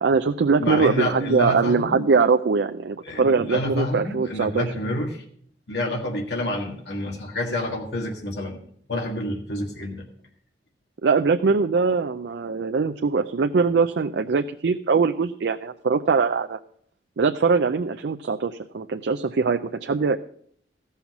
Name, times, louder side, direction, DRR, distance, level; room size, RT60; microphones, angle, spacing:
voice 1, 0.0-4.7 11.0-16.6 17.2-20.2, right 4 dB, 75° right, 6 dB, 0.4 m, -22 dB
voice 2, 0.6-2.1 3.0-5.2 5.7-8.6 8.9-10.0, left 1 dB, 75° left, 0 dB, 1.7 m, -28 dB
15.0 x 5.7 x 5.8 m, 0.62 s
head